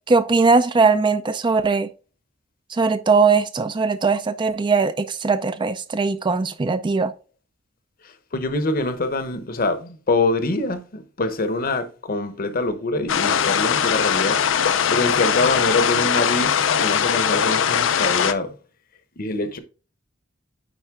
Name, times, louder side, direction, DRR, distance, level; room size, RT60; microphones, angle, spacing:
voice 1, 0.1-1.9 2.7-7.1, right 4 dB, 25° right, 0.4 m, -20 dB
voice 2, 8.3-14.4 14.9-18.5 19.2-19.6, left 2 dB, 50° left, 0.9 m, -24 dB
sound 1, 13.1-18.3, left 8 dB, 80° left, 0.5 m, -20 dB
9.1 x 4.4 x 3.6 m
head